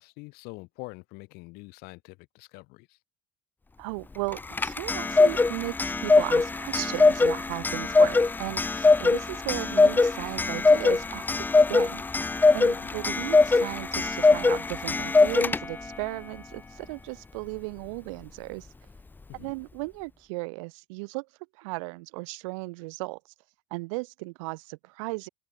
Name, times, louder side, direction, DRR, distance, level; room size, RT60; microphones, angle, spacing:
voice 1, 0.0-3.0 12.7-12.9 19.3-19.5, left 26 dB, 70° left, 6.1 m, -45 dB
voice 2, 3.8-12.0 12.5-18.7 19.4-21.3 21.6-23.2 23.7-25.3, right 27 dB, 80° right, 1.0 m, -36 dB
Clock, 4.3-15.9, left 3 dB, 10° left, 0.4 m, -22 dB
open air
supercardioid pair, 85°, 17 cm